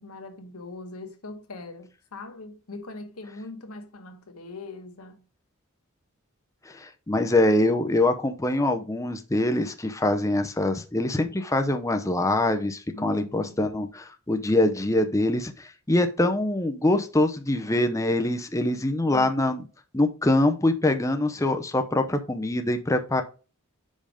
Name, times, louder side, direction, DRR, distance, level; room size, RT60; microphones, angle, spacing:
voice 1, 0.0-5.2 12.9-13.6 18.7-19.3, left 2 dB, 85° left, 1.3 m, -41 dB
voice 2, 6.7-19.6 19.9-23.2, left 1 dB, 15° left, 0.7 m, -24 dB
5.4 x 5.2 x 5.0 m
head